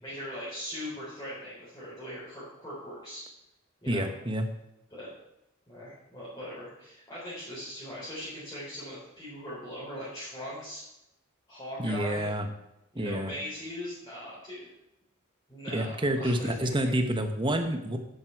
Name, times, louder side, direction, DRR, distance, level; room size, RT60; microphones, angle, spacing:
voice 1, 0.0-3.2 3.8-4.1 4.9-5.1 5.7-10.8 11.5-12.3 12.9-14.7 15.5-16.7, equal, 15° left, -10 dB, 4.0 m, -40 dB
voice 2, 3.9-4.5 11.8-12.5 13.0-13.3 15.7-18.0, right 1 dB, 25° right, 7 dB, 1.0 m, -28 dB
10.0 x 9.4 x 4.6 m, 0.87 s
head